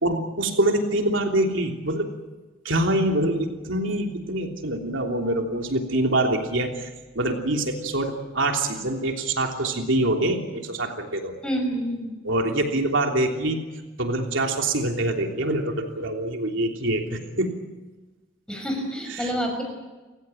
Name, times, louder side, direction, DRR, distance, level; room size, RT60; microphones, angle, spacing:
voice 1, 0.0-2.1 2.6-6.9 7.1-11.4 12.2-13.6 14.0-17.5 19.1-19.3, right 1 dB, 80° right, 2 dB, 3.2 m, -25 dB
voice 2, 11.4-12.1 18.5-19.6, equal, 5° left, 2 dB, 6.1 m, -28 dB
30.0 x 16.0 x 9.2 m, 1.2 s
head